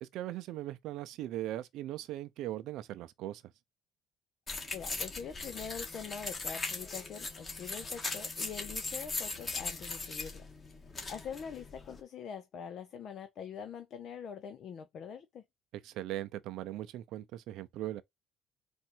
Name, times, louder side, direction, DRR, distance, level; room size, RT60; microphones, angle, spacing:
voice 1, 0.0-3.4 15.8-18.0, right 14 dB, 75° right, 0.6 m, -39 dB
sound 1, 4.5-12.0, left 3 dB, 30° left, 1.6 m, -39 dB
voice 2, 4.7-10.4 11.1-15.4, left 7 dB, 55° left, 0.6 m, -44 dB
4.3 x 2.6 x 4.4 m
cardioid pair, 105°, 0 cm